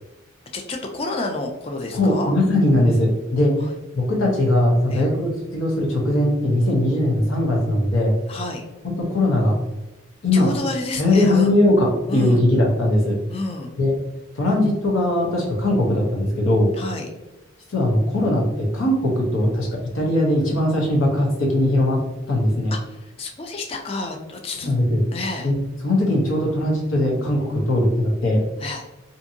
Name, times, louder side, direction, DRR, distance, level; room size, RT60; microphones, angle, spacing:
voice 1, 0.5-2.3 3.6-3.7 4.9-5.1 8.3-8.6 10.3-11.5 12.1-12.4 13.3-13.7 16.8-17.1 22.7-24.7 25.1-25.5 28.6-28.9, left 2 dB, 30° left, 2 dB, 0.3 m, -30 dB
voice 2, 1.9-3.6 3.9-8.1 8.8-9.6 10.2-10.5 11.0-13.2 13.8-13.9 14.3-16.7 17.7-19.7 19.9-22.0 22.3-22.7 24.6-25.0 25.4-25.5 25.8-28.4, left 1 dB, 85° left, -2 dB, 0.7 m, -20 dB
2.6 x 2.6 x 2.6 m, 1.0 s
head